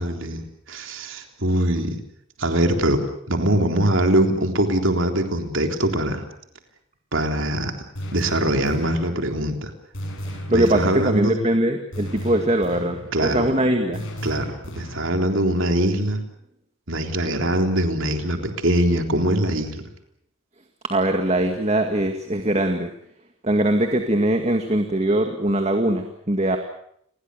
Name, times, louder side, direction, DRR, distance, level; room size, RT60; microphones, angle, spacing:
voice 1, 0.0-2.0 2.4-6.2 7.1-7.7 8.1-9.7 10.5-11.4 13.1-13.5 14.2-16.2 16.9-19.8, right 1 dB, 60° right, 5 dB, 3.7 m, -22 dB
sound 1, 8.0-9.2 9.9-11.1 11.9-13.1 13.9-15.1, equal, 65° left, 7.4 m, -34 dB
voice 2, 10.3-14.0 20.9-22.9 23.4-26.6, right 1 dB, 30° right, 5 dB, 2.0 m, -21 dB
29.5 x 21.0 x 6.7 m, 0.70 s
head